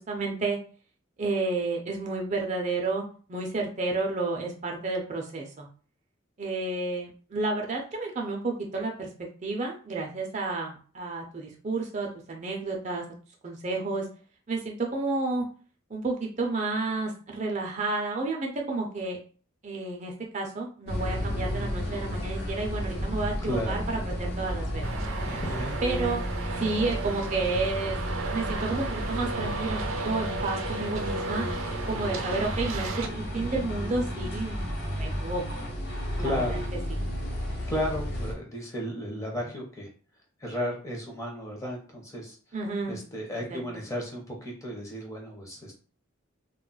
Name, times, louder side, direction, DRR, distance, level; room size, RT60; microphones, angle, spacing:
voice 1, 0.1-0.6 1.2-3.0 3.3-5.7 6.4-9.1 9.4-13.0 13.4-14.0 14.5-15.4 15.9-19.2 19.6-24.9 25.8-26.2 26.6-28.0 28.3-31.4 31.9-34.6 35.0-35.4 36.2-36.6 36.9-37.0 42.5-43.0 43.5-43.8, right 3 dB, 35° right, 1 dB, 0.5 m, -31 dB
sound 1, 20.9-38.3, equal, 55° left, 0.8 m, -32 dB
voice 2, 23.4-23.8 25.2-25.8 36.2-36.6 37.4-39.9 40.4-42.4 42.9-45.7, left 1 dB, 15° left, -1 dB, 0.7 m, -34 dB
Traffic noise roadway noise, 24.8-33.1, right 4 dB, 85° right, 0.5 m, -35 dB
2.2 x 2.1 x 3.8 m, 0.40 s
head